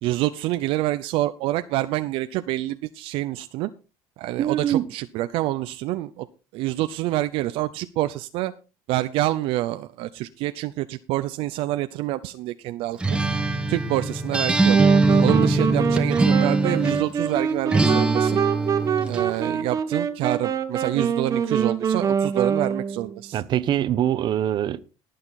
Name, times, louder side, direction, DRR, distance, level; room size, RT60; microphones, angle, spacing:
voice 1, 0.0-3.7 4.2-6.3 6.5-8.5 8.9-13.0 13.7-14.8 15.2-18.4 19.0-23.4, right 16 dB, 75° right, 0.7 m, -27 dB
voice 2, 4.4-4.8 23.3-24.8, right 11 dB, 50° right, 1.0 m, -23 dB
Acoustic guitar, 13.0-17.1 17.7-19.3, right 3 dB, 10° right, 1.4 m, -22 dB
sound 1, 14.7-23.2, right 7 dB, 35° right, 1.5 m, -25 dB
19.0 x 6.8 x 4.1 m
cardioid pair, 110°, 10 cm